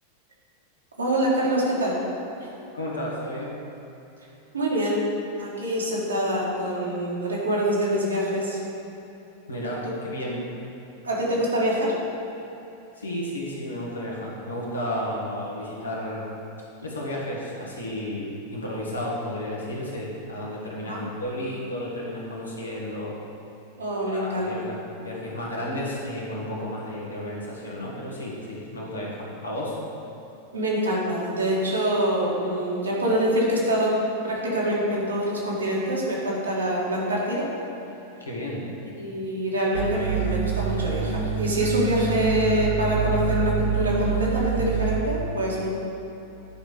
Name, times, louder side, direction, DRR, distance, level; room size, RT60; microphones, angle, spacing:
voice 1, 1.0-2.0 4.5-8.6 9.8-9.9 11.0-11.9 20.8-21.0 23.8-24.6 30.5-33.9 34.2-37.5 39.0-45.7, right 1 dB, 75° right, -5 dB, 2.0 m, -25 dB
voice 2, 2.7-3.6 9.5-10.4 12.9-16.3 16.8-23.2 24.0-29.8 38.2-38.6, left 1 dB, 75° left, -4 dB, 1.7 m, -32 dB
sound 1, 39.7-44.9, right 5 dB, 60° right, 0.7 m, -26 dB
10.0 x 4.8 x 5.1 m, 3.0 s
figure-of-eight pair, 90°, 0 cm